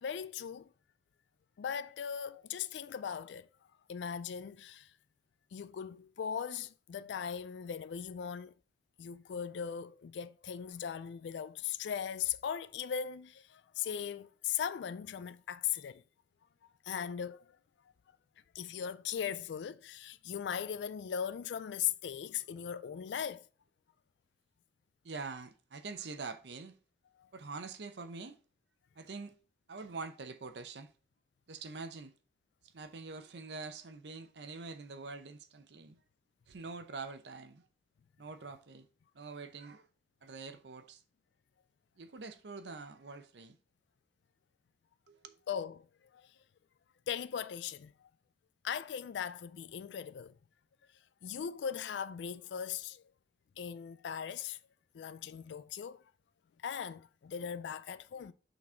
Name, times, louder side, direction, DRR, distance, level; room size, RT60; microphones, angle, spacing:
voice 1, 0.0-0.7 1.6-3.5 3.9-4.9 5.5-8.5 9.0-16.0 16.9-17.4 18.5-23.4 27.2-27.3 45.5-45.9 46.1-46.3 47.1-48.1 48.6-50.4 51.2-53.0 53.6-54.6 54.9-56.0 56.6-58.3, left 8 dB, 80° left, 0.3 m, -39 dB
voice 2, 25.0-26.8 27.3-28.4 29.0-29.4 29.7-30.9 31.5-32.1 32.7-36.0 36.5-37.7 38.2-38.9 39.1-39.9 40.2-41.0 42.0-43.6 45.1-45.4, right 4 dB, 75° right, 0.7 m, -45 dB
6.0 x 4.0 x 4.3 m
head